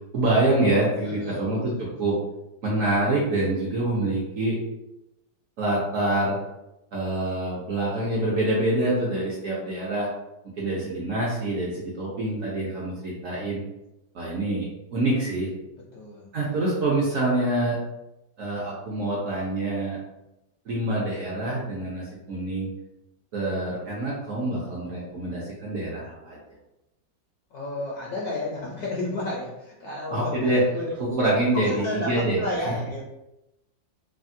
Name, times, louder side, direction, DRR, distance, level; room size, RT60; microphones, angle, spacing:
voice 1, 0.1-2.2 2.6-4.6 5.6-6.4 6.9-10.1 10.4-13.6 14.1-15.5 16.3-17.8 18.4-20.0 20.7-22.7 23.3-26.4 30.1-30.6 31.0-32.8, right 2 dB, 70° right, -5 dB, 0.7 m, -26 dB
voice 2, 1.0-1.5 15.9-16.3 27.5-30.9 31.5-33.1, left 2 dB, 75° left, -4 dB, 0.9 m, -32 dB
3.3 x 2.1 x 2.5 m, 0.92 s
omnidirectional pair, 2.0 m